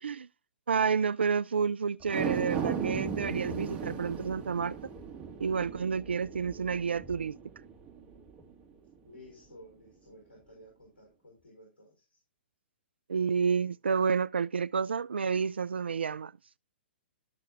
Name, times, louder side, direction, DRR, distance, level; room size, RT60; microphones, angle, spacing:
voice 1, 0.7-4.8 5.4-7.4 13.1-16.3, right 6 dB, 85° right, 0.3 m, -30 dB
sound 1, 2.0-8.5 8.9-9.0, right 6 dB, 25° right, 2.0 m, -37 dB
voice 2, 9.0-12.2, left 1 dB, 90° left, 4.9 m, -54 dB
13.0 x 6.8 x 2.4 m
hypercardioid pair, 125°, 6 cm